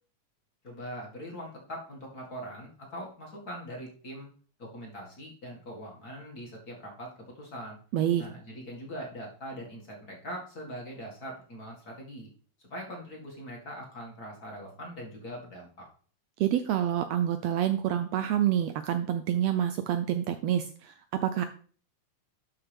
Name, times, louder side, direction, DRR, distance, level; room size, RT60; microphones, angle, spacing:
voice 1, 0.6-4.3 4.6-7.8 8.2-12.3 12.7-15.7, equal, 35° left, -1 dB, 2.1 m, -42 dB
voice 2, 7.9-8.3 16.4-20.9 21.2-21.4, right 10 dB, 75° right, 9 dB, 1.6 m, -27 dB
12.0 x 5.9 x 3.4 m, 0.43 s
omnidirectional pair, 3.3 m